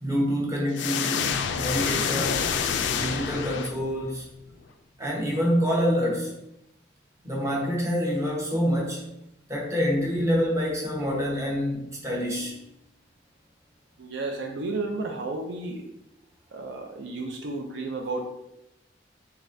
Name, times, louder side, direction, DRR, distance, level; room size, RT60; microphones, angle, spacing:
voice 1, 0.0-2.6 2.9-4.3 5.0-6.3 7.2-9.0 9.5-12.6, equal, 15° right, -3 dB, 0.9 m, -27 dB
sound 1, 0.7-4.1, left 7 dB, 70° left, 0.3 m, -27 dB
voice 2, 14.0-15.8 16.5-18.3, right 3 dB, 70° right, 3 dB, 0.5 m, -32 dB
4.0 x 3.4 x 2.6 m, 0.86 s
head